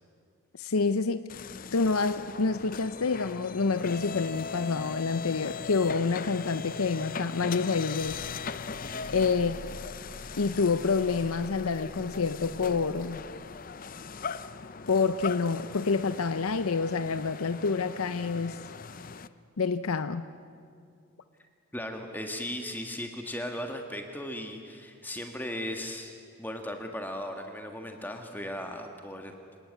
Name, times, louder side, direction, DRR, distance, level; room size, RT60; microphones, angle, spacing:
voice 1, 0.6-1.3 1.7-8.3 9.1-9.6 10.4-13.2 14.9-18.6 19.6-20.3, left 4 dB, 80° left, 11 dB, 0.7 m, -28 dB
sound 1, 1.3-19.3, left 5 dB, 40° left, 0.6 m, -40 dB
voice 2, 21.7-29.3, left 1 dB, 10° left, 4 dB, 1.5 m, -37 dB
26.5 x 19.0 x 9.5 m, 2.3 s
head